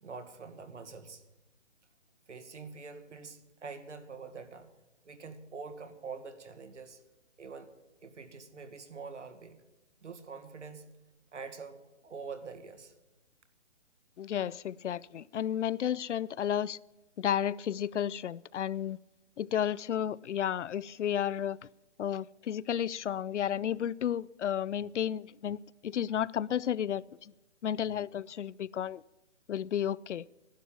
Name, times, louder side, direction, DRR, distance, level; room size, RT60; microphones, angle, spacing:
voice 1, 0.0-1.2 2.3-4.7 5.0-7.0 7.4-7.8 8.0-9.6 10.0-10.9 11.3-12.9, right 5 dB, 85° right, 2.0 m, -45 dB
voice 2, 14.2-16.8 17.2-19.0 19.4-21.6 22.0-27.3 27.6-29.0 29.5-30.3, left 9 dB, 85° left, 0.5 m, -32 dB
11.5 x 11.5 x 7.4 m
hypercardioid pair, 180°, 35 cm